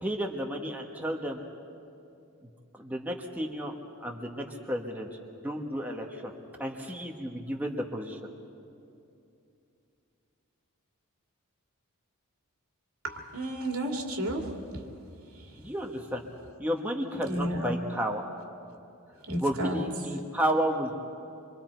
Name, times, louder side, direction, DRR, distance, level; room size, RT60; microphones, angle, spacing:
voice 1, 0.0-1.4 2.8-3.7 4.0-5.1 5.4-6.3 6.6-8.2 15.6-16.2 16.6-18.3 19.4-20.9, equal, 10° right, 0 dB, 1.4 m, -32 dB
voice 2, 13.0-14.4 17.2-17.7 19.3-19.8, right 1 dB, 75° right, 1 dB, 2.5 m, -32 dB
26.0 x 24.0 x 4.6 m, 2.6 s
head